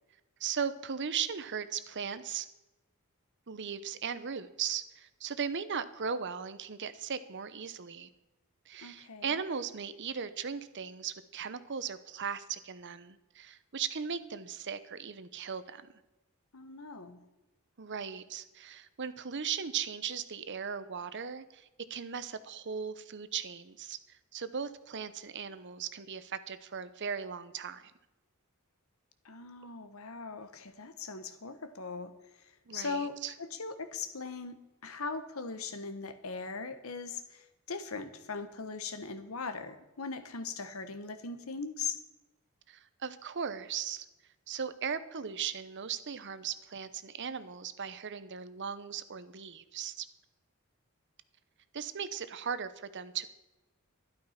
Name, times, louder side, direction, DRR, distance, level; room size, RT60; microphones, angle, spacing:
voice 1, 0.4-2.5 3.5-8.1 8.7-15.8 17.8-27.9 32.7-33.3 42.7-44.1 44.5-50.1 51.7-53.3, right 7 dB, 55° right, 13 dB, 0.8 m, -38 dB
voice 2, 8.8-9.4 16.5-17.2 29.2-32.1 32.4-42.0, left 4 dB, 70° left, 10 dB, 1.2 m, -40 dB
12.0 x 11.5 x 5.8 m, 1.0 s
head